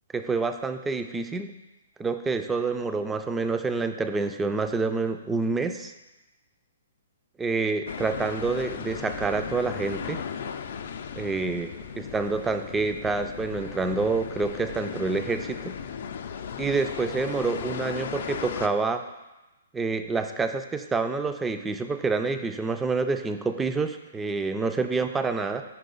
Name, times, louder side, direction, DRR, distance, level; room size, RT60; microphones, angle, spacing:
voice 1, 0.1-1.5 2.0-5.9 7.4-10.2 11.2-15.7 16.6-19.0 19.7-25.6, right 4 dB, 10° right, 8 dB, 0.3 m, -27 dB
sound 1, 7.9-18.7, left 7 dB, 60° left, 0.4 m, -36 dB
5.7 x 4.7 x 3.9 m, 1.0 s
hypercardioid pair, 140°, 0 cm